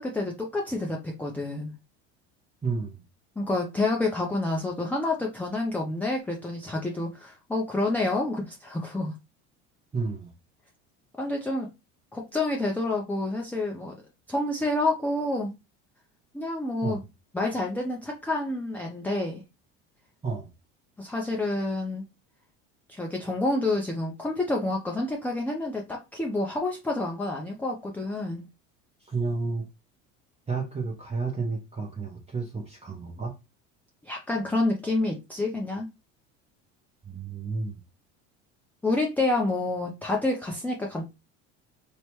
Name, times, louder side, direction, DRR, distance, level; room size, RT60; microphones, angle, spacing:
voice 1, 0.0-1.7 3.4-9.1 11.2-11.7 12.1-13.9 14.3-15.5 16.3-17.0 17.3-19.4 21.0-22.1 22.9-28.5 34.0-35.9 38.8-41.1, left 2 dB, 5° left, 0.4 m, -28 dB
voice 2, 2.6-3.0 9.9-10.3 16.8-17.0 20.2-20.5 29.0-29.7 30.5-33.3 37.0-37.8, right 4 dB, 15° right, 0.8 m, -31 dB
3.1 x 2.0 x 2.9 m
hypercardioid pair, 85°, 36 cm